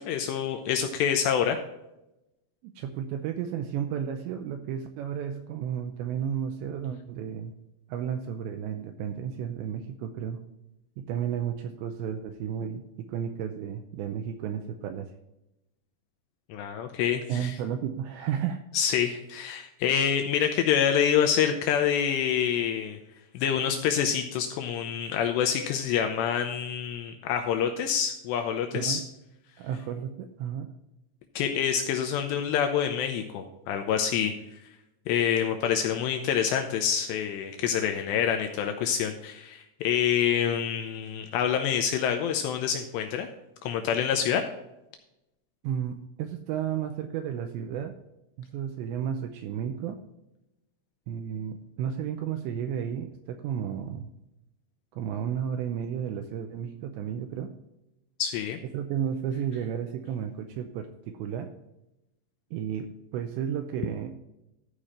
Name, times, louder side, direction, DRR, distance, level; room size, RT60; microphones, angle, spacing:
voice 1, 0.0-1.6 16.5-17.5 18.7-23.0 23.3-29.0 31.4-34.3 35.1-43.3 43.6-44.4 58.2-58.6, left 8 dB, 85° left, 5 dB, 2.5 m, -27 dB
voice 2, 2.6-7.5 7.9-10.4 11.0-15.1 17.3-18.6 28.7-29.0 29.6-30.7 45.6-48.0 48.4-50.0 51.1-54.1 54.9-57.5 58.7-61.5 62.5-64.1, right 8 dB, 85° right, 6 dB, 2.6 m, -33 dB
13.5 x 5.0 x 4.2 m, 0.91 s
omnidirectional pair, 5.6 m